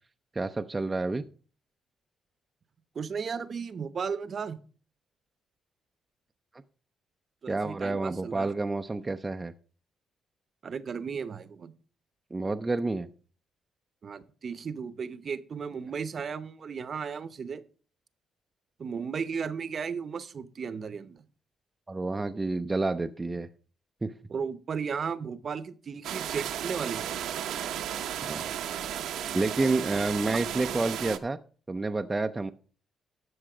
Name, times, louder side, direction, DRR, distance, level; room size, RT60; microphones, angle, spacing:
voice 1, 0.3-1.2 7.5-9.5 12.3-13.1 21.9-23.5 24.0-24.1 28.2-28.5 29.3-31.4 31.7-32.5, right 3 dB, 20° right, 6 dB, 0.5 m, -29 dB
voice 2, 2.9-4.6 7.4-8.5 10.6-11.7 14.0-17.6 18.8-21.2 24.3-27.1, right 6 dB, 45° right, 14 dB, 0.8 m, -35 dB
sound 1, 26.0-31.2, right 10 dB, 80° right, 0.8 m, -34 dB
12.5 x 6.2 x 4.9 m, 0.40 s
cardioid pair, 90°, 0 cm